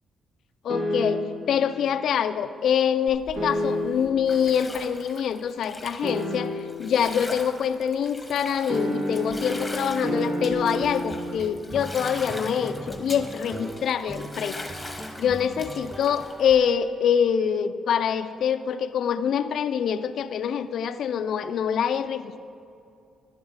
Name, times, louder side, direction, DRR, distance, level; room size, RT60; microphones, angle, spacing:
voice 1, 0.6-14.6 15.2-22.4, left 8 dB, 70° left, 10 dB, 0.4 m, -25 dB
sound 1, 0.7-1.5 3.4-4.2 6.0-6.9 8.7-11.4, left 1 dB, 50° right, 1.8 m, -29 dB
Bathtub (filling or washing), 3.1-16.6, left 2 dB, 10° left, 1.3 m, -41 dB
sound 2, 9.3-9.7 10.2-17.4, right 1 dB, 15° right, 0.6 m, -40 dB
12.0 x 10.5 x 4.0 m, 2.6 s
cardioid pair, 90°, 0 cm